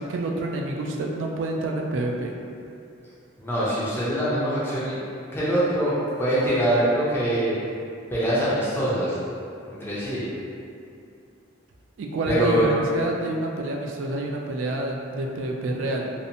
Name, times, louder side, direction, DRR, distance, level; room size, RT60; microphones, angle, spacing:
voice 1, 0.0-2.3 12.0-16.1, right 2 dB, 75° right, 1 dB, 0.3 m, -28 dB
voice 2, 3.4-5.0 5.3-7.5 8.1-9.2 9.7-10.3 12.3-12.6, right 1 dB, 10° left, -10 dB, 0.4 m, -24 dB
2.7 x 2.1 x 2.6 m, 2.6 s
head